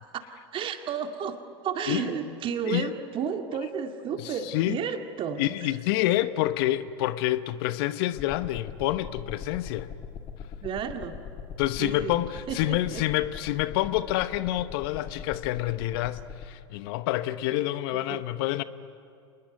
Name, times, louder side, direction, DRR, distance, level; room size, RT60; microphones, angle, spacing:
voice 1, 0.5-5.7 10.6-11.2 11.8-12.2 12.5-13.0 18.1-18.2, right 7 dB, 35° right, 2.1 m, -32 dB
voice 2, 4.2-4.8 5.4-9.9 11.6-18.6, left 15 dB, 55° left, 0.9 m, -28 dB
sound 1, 8.2-16.5, left 7 dB, 35° left, 2.3 m, -41 dB
26.5 x 20.5 x 9.6 m
hypercardioid pair, 90°, 15 cm